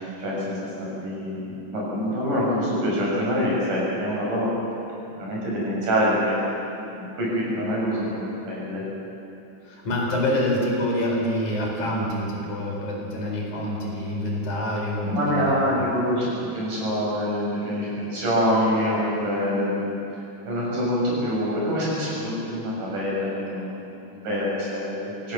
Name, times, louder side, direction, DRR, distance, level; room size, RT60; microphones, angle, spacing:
voice 1, 0.2-4.5 5.1-6.4 6.9-8.8 15.0-20.0 20.4-25.3, equal, 70° right, -6 dB, 8.8 m, -25 dB
voice 2, 9.6-15.8, left 1 dB, 60° left, -2 dB, 5.8 m, -26 dB
26.5 x 16.5 x 7.3 m, 2.9 s
omnidirectional pair, 3.8 m